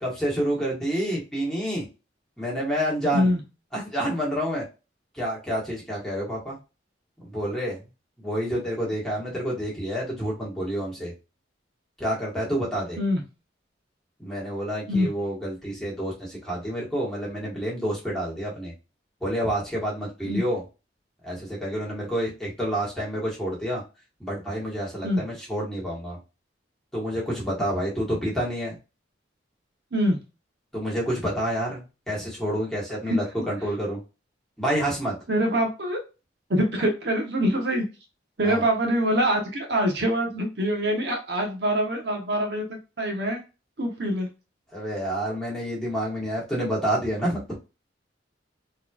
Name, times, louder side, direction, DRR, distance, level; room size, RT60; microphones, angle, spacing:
voice 1, 0.0-1.8 2.4-3.3 3.7-4.6 5.1-6.6 7.2-7.8 8.2-11.1 12.0-13.0 14.2-18.7 19.2-20.6 21.2-23.8 24.2-26.2 26.9-28.8 30.7-34.0 34.6-35.1 38.4-38.6 44.7-47.4, equal, 5° left, -5 dB, 1.6 m, -28 dB
voice 2, 35.3-36.0 36.5-37.8 38.4-42.7 43.0-43.4 43.8-44.3, equal, 60° right, 2 dB, 1.0 m, -24 dB
4.0 x 3.2 x 2.3 m, 0.29 s
head